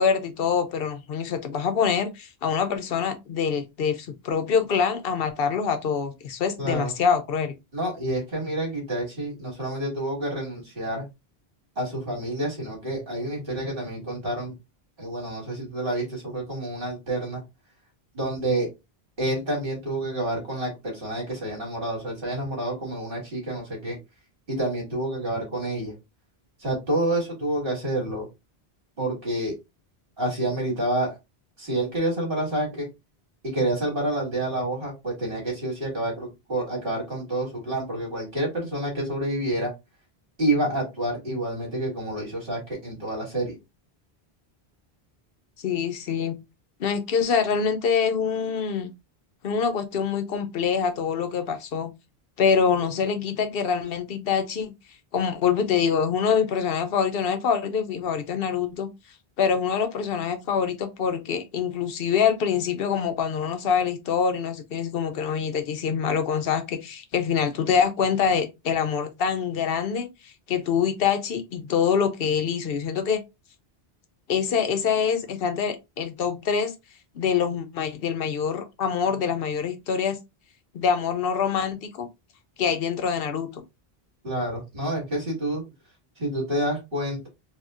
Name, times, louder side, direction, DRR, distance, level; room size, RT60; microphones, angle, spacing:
voice 1, 0.0-7.6 45.6-46.4 46.8-48.9 49.4-51.9 52.4-54.7 55.1-58.9 59.4-73.2 74.3-76.7 77.1-80.2 80.7-82.1 82.6-83.6, left 6 dB, 70° left, 0.8 m, -25 dB
voice 2, 6.6-6.9 7.7-11.0 11.8-14.5 15.0-17.4 18.1-18.7 19.2-24.0 24.5-25.9 26.6-28.3 29.0-29.5 30.2-31.1 31.6-32.9 33.5-39.7 40.4-43.6 84.2-85.6 86.2-87.3, right 1 dB, 60° right, 2.1 m, -28 dB
4.3 x 2.3 x 2.4 m
omnidirectional pair, 1.0 m